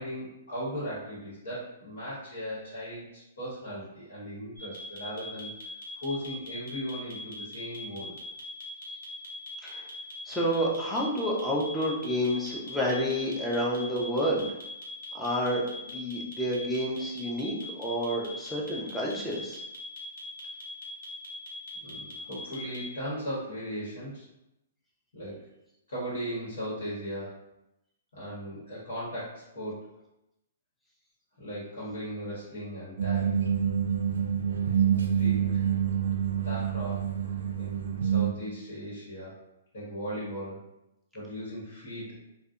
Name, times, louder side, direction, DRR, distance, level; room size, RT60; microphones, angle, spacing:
voice 1, 0.0-5.5 6.0-8.1 21.8-24.2 25.1-25.4 25.9-27.4 28.1-29.8 31.4-33.4 35.0-35.7 36.4-37.1 37.5-39.4 39.7-40.6 41.1-42.1, equal, 75° left, -8 dB, 1.1 m, -37 dB
sound 1, 4.6-22.8, left 2 dB, 50° left, 0.8 m, -42 dB
voice 2, 10.2-14.5 15.1-19.6, equal, ahead, -5 dB, 0.4 m, -29 dB
sound 2, 33.0-38.3, right 8 dB, 85° right, 0.4 m, -27 dB
2.6 x 2.1 x 2.3 m, 0.88 s
hypercardioid pair, 160°, 0 cm